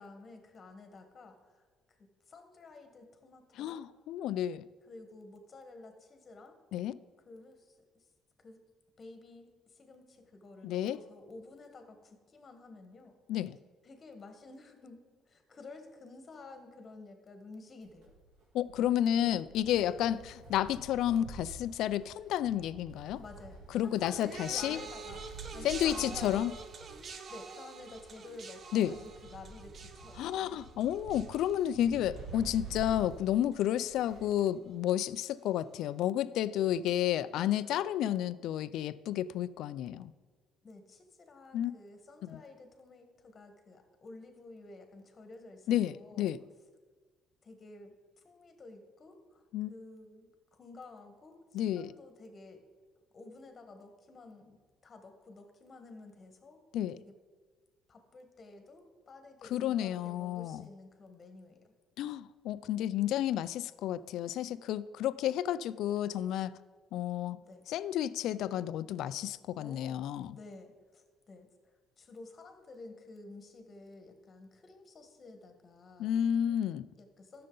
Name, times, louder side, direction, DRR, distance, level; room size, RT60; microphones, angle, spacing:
voice 1, 0.0-3.9 4.8-6.6 7.2-8.1 8.4-8.6 9.0-13.2 13.8-18.1 18.9-19.4 19.7-20.0 23.2-25.3 25.5-26.5 27.3-30.5 40.6-46.3 47.4-52.6 53.1-56.6 56.9-57.1 57.9-61.7 67.3-67.6 69.6-70.0 70.3-76.5 77.0-77.5, left 3 dB, 30° left, 6 dB, 1.4 m, -52 dB
voice 2, 3.6-4.6 6.7-7.0 10.6-11.0 13.3-13.6 18.5-20.2 20.5-23.2 23.7-24.8 25.6-26.5 28.7-28.9 30.2-40.1 41.5-41.7 42.3-42.4 45.7-46.4 49.5-49.7 51.5-51.9 56.7-57.0 59.5-60.7 62.0-66.5 66.9-67.4 67.7-70.4 76.0-76.9, left 11 dB, 75° left, 16 dB, 0.3 m, -31 dB
Wind, 17.8-34.4 34.7-34.8 35.8-35.9, right 3 dB, 90° right, 2.6 m, -49 dB
sound 1, 24.2-33.5 33.8-34.4 35.2-35.3, right 5 dB, 40° right, 0.7 m, -48 dB
13.5 x 6.7 x 3.9 m, 1.5 s
cardioid pair, 140°, 0 cm